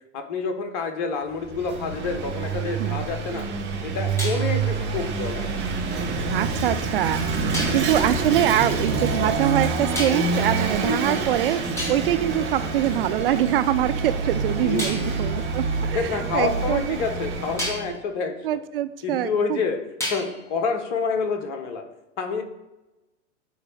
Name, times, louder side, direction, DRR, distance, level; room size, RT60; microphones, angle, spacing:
voice 1, 0.1-3.5 3.8-5.6 10.8-11.3 14.6-15.3 15.9-18.3 19.0-19.8 20.1-21.8 22.2-22.4, left 5 dB, 45° left, 5 dB, 1.3 m, -28 dB
Vehicle / Engine, 1.3-17.9, right 4 dB, 30° right, 1.6 m, -27 dB
sound 1, 1.6-3.0 4.2-6.3 7.5-7.9 10.0-10.5 11.3-11.4 11.8-13.4 14.8-17.0 17.6-18.0 20.0-20.6, left 1 dB, 5° left, 2.4 m, -36 dB
voice 2, 6.3-11.6 11.9-17.0 18.4-19.6, right 11 dB, 50° right, 12 dB, 0.5 m, -24 dB
9.1 x 3.3 x 6.4 m, 0.98 s
figure-of-eight pair, 95°, 36 cm